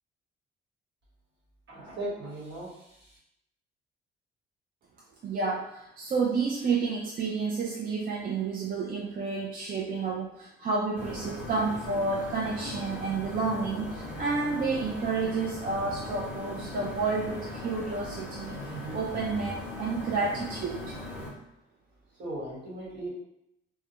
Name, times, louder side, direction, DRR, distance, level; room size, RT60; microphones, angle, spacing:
voice 1, 1.7-3.2 18.7-19.0 22.2-23.1, right 1 dB, 60° right, -6 dB, 1.2 m, -38 dB
voice 2, 5.2-18.7 18.9-19.5 19.8-21.0, right 4 dB, 45° right, -3 dB, 0.4 m, -30 dB
sound 1, 11.0-21.3, left 1 dB, 10° right, 0.9 m, -39 dB
2.2 x 2.1 x 2.9 m, 0.81 s
cardioid pair, 90°, 20 cm